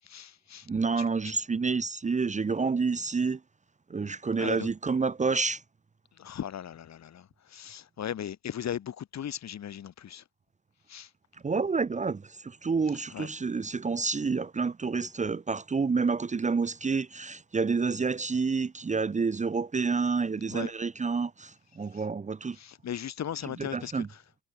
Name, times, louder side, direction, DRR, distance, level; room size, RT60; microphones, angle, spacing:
voice 1, 0.0-0.7 1.0-1.3 4.4-4.7 6.1-10.3 10.9-11.1 13.1-13.3 20.5-20.7 21.9-22.0 22.5-24.2, left 9 dB, 60° left, 4.9 m, -38 dB
voice 2, 0.7-3.4 3.9-5.6 11.4-22.6 23.7-24.1, right 4 dB, 25° right, 0.9 m, -29 dB
cardioid pair, 90°, 30 cm